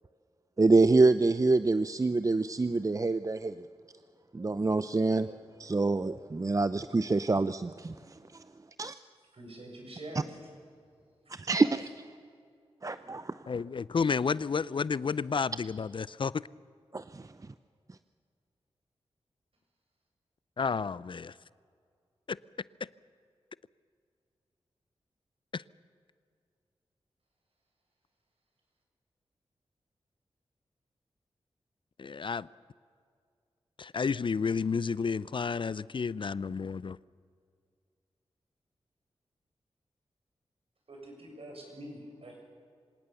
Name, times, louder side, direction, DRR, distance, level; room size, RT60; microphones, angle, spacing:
voice 1, 0.6-3.7 4.3-8.4 8.8-8.9 11.3-11.9 12.8-13.4 16.9-17.3, right 3 dB, 30° right, 0.6 m, -26 dB
voice 2, 9.4-10.3 11.4-11.7 40.9-42.4, right 1 dB, 60° right, 7.2 m, -45 dB
voice 3, 13.5-16.4 20.6-21.3 22.3-22.4 25.5-25.6 32.0-32.5 33.8-37.0, left 5 dB, 50° left, 0.5 m, -31 dB
26.0 x 18.0 x 7.0 m
cardioid pair, 45°, 11 cm